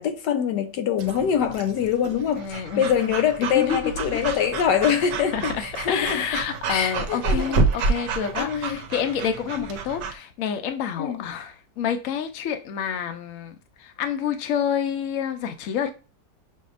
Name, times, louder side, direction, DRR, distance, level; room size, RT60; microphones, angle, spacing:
voice 1, 0.0-6.4 6.7-8.8 9.6-9.7 11.0-11.2, left 8 dB, 85° left, 1.3 m, -25 dB
Breathing / Dog, 1.0-10.1, right 4 dB, 70° right, 1.1 m, -29 dB
voice 2, 2.4-2.9 3.4-4.2 5.3-15.9, left 8 dB, 65° left, 0.9 m, -28 dB
6.4 x 2.7 x 2.4 m
omnidirectional pair, 1.8 m